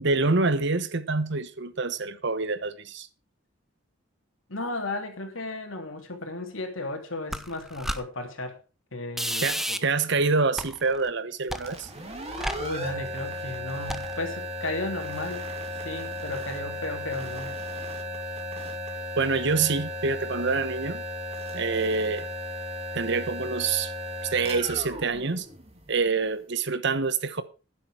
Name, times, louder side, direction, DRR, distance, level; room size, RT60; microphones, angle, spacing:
voice 1, 0.0-3.1 9.4-11.9 19.2-21.0 21.5-22.3 22.9-23.9 24.2-25.5 25.9-27.4, right 4 dB, 60° right, 1.1 m, -26 dB
voice 2, 4.5-8.6 8.9-9.8 12.6-15.5 15.8-17.6, left 2 dB, 80° left, 3.0 m, -34 dB
sound 1, 7.3-8.0 9.2-9.8 10.6-11.1 11.5-13.1 13.9-14.2, equal, ahead, 0.8 m, -32 dB
sound 2, 11.6-26.2, equal, 35° right, 2.7 m, -35 dB
11.5 x 10.5 x 4.9 m
head